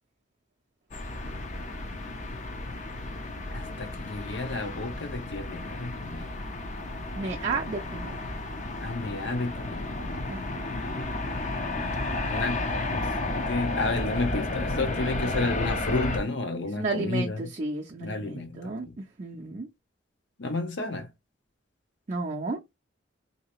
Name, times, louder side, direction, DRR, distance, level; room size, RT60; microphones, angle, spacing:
sound 1, 0.9-16.2, left 2 dB, 40° left, 0.5 m, -32 dB
voice 1, 3.5-6.4 8.8-9.9 12.3-12.7 13.0-17.5 18.0-19.0 20.4-21.1, left 2 dB, 70° left, 0.8 m, -31 dB
voice 2, 7.2-8.2 10.3-10.7 16.8-19.7 22.1-22.6, right 3 dB, 40° right, 0.5 m, -33 dB
3.2 x 2.8 x 2.9 m
head